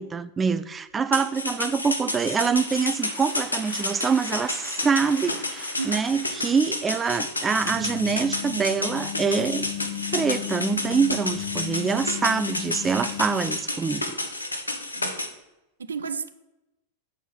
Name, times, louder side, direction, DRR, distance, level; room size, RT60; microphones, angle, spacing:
voice 1, 0.0-9.7 10.1-14.1, right 5 dB, 15° right, 12 dB, 0.4 m, -25 dB
sound 1, 1.1-15.3, left 2 dB, 80° left, 0.8 m, -31 dB
sound 2, 2.1-7.2, equal, ahead, 1.3 m, -45 dB
voice 2, 5.8-6.2 14.9-15.2 15.8-16.3, right 5 dB, 70° right, 10 dB, 0.5 m, -33 dB
sound 3, 7.6-13.5, left 11 dB, 30° left, 1.7 m, -35 dB
7.2 x 4.5 x 5.8 m, 0.95 s
figure-of-eight pair, 90°, 0 cm